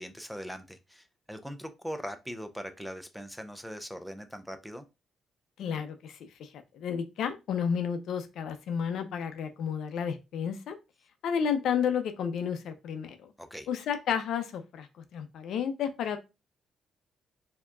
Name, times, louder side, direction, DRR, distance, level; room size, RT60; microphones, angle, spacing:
voice 1, 0.0-4.8 13.4-13.7, equal, ahead, 8 dB, 0.5 m, -41 dB
voice 2, 5.6-6.5 6.7-10.8 11.2-13.2 13.7-14.9 15.1-16.2, left 7 dB, 75° left, 8 dB, 0.5 m, -31 dB
4.5 x 2.8 x 2.3 m, 0.26 s
cardioid pair, 90°, 0 cm